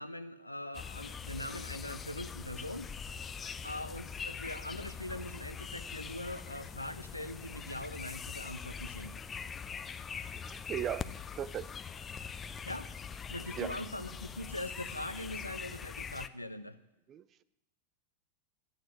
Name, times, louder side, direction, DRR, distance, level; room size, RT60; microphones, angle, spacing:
voice 1, 0.0-2.9 3.6-9.1 12.7-12.9 13.3-16.8, left 1 dB, 85° left, 12 dB, 0.7 m, -42 dB
sound 1, 0.7-16.3, left 6 dB, 20° left, 0.5 m, -43 dB
voice 2, 10.5-11.0 11.4-11.7 13.6-13.8 17.1-17.2, right 10 dB, 30° right, 17 dB, 0.6 m, -36 dB
11.5 x 9.0 x 9.4 m, 0.93 s
figure-of-eight pair, 90°, 0 cm